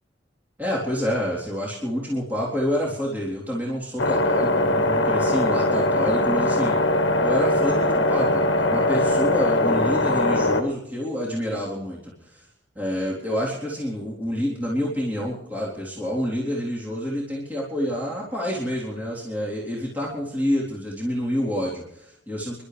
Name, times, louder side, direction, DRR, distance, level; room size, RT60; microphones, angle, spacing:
voice 1, 0.6-6.8 7.2-12.5 12.8-22.6, equal, 10° right, -6 dB, 3.7 m, -28 dB
sound 1, 4.0-10.6, left 1 dB, 80° left, 1.7 m, -21 dB
28.5 x 12.0 x 3.4 m, 0.77 s
head